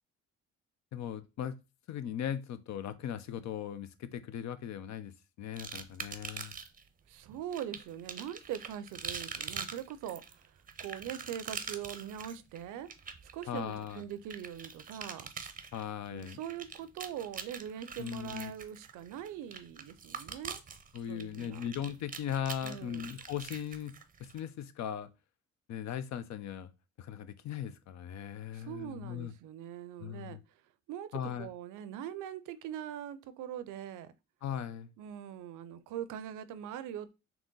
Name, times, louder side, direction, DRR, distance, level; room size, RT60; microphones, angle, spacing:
voice 1, 0.9-1.5 1.9-5.1 5.4-6.5 13.5-14.0 15.7-16.4 18.0-18.5 20.9-23.9 24.2-25.1 25.7-26.7 27.0-29.3 30.0-30.4 31.1-31.5 34.4-34.9, left 9 dB, 65° left, 0.5 m, -38 dB
Breaking Ice, 5.6-6.8 7.5-24.4, right 6 dB, 30° right, 0.6 m, -44 dB
voice 2, 7.1-12.9 13.3-15.3 16.1-20.6 21.1-21.6 22.6-23.0 28.5-30.4 30.9-34.1 35.0-37.1, right 10 dB, 85° right, 0.5 m, -42 dB
3.8 x 3.0 x 3.7 m
cardioid pair, 90°, 30 cm